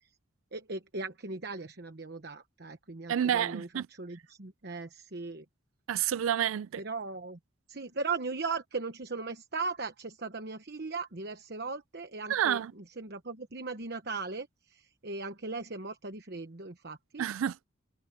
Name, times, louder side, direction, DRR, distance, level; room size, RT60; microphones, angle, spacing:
voice 1, 0.5-5.4 6.8-7.4 7.7-17.2, right 4 dB, 55° right, 1.1 m, -38 dB
voice 2, 3.1-3.9 5.9-6.8 12.3-12.7 17.2-17.6, right 9 dB, 85° right, 0.3 m, -29 dB
head